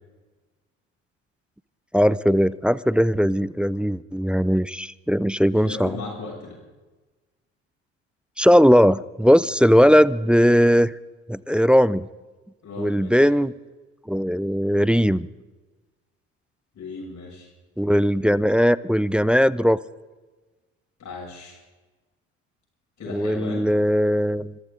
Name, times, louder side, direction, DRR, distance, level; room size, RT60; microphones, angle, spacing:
voice 1, 1.9-5.9 8.4-10.9 11.3-12.1 12.8-13.5 14.1-15.3 17.8-19.8 23.1-24.5, equal, 5° right, 18 dB, 0.4 m, -19 dB
voice 2, 5.6-6.6 12.6-13.3 16.7-17.5 21.0-21.6 23.0-23.7, left 4 dB, 55° left, -2 dB, 7.2 m, -36 dB
25.5 x 14.0 x 3.9 m, 1.2 s
hypercardioid pair, 55°, 34 cm